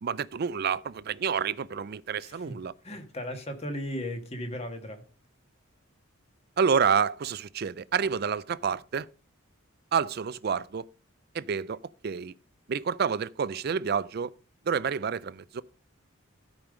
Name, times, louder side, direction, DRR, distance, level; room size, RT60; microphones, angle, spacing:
voice 1, 0.0-2.7 6.6-9.1 9.9-10.9 11.3-12.3 12.7-14.3 14.7-15.6, right 6 dB, 45° right, 0.4 m, -28 dB
voice 2, 2.2-2.6 2.8-5.0, left 1 dB, 30° left, 1.5 m, -36 dB
13.5 x 5.2 x 5.0 m
head